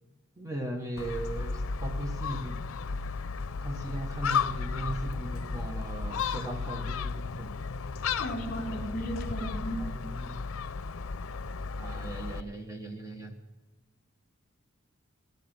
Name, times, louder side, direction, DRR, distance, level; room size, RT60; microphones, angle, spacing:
voice 1, 0.4-2.6 2.9-3.0 3.6-7.5 7.9-8.1 9.8-10.5 11.8-13.4, right 1 dB, 15° right, 4 dB, 1.1 m, -38 dB
Gull seagull, 1.0-12.4, left 5 dB, 90° left, 0.5 m, -34 dB
voice 2, 8.2-9.8, equal, 45° left, 1 dB, 3.5 m, -35 dB
17.0 x 13.0 x 6.0 m, 1.1 s
head